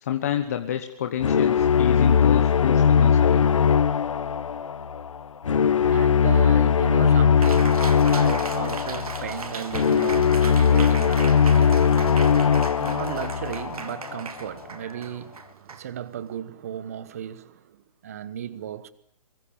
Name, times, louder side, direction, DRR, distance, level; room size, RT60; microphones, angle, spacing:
voice 1, 0.0-3.7, left 10 dB, 25° left, 1.2 m, -29 dB
sound 1, 1.2-14.3, left 7 dB, 60° left, 1.1 m, -20 dB
voice 2, 5.6-18.9, right 10 dB, 25° right, 1.1 m, -35 dB
Cheering, 7.4-16.4, right 5 dB, 75° right, 3.5 m, -38 dB
24.0 x 22.5 x 8.6 m
hypercardioid pair, 180°, 19 cm